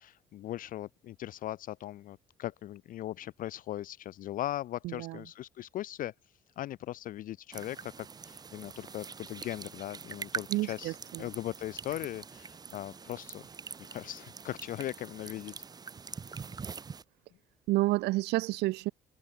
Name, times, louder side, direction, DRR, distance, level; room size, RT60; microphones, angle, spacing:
voice 1, 0.0-6.1 6.6-13.4 13.9-15.5, left 13 dB, 55° left, 0.5 m, -39 dB
voice 2, 4.8-5.2 10.5-11.3 17.7-18.9, right 19 dB, 80° right, 0.7 m, -30 dB
sound 1, 7.5-17.0, right 5 dB, 25° right, 0.6 m, -44 dB
cardioid pair, 110°, 17 cm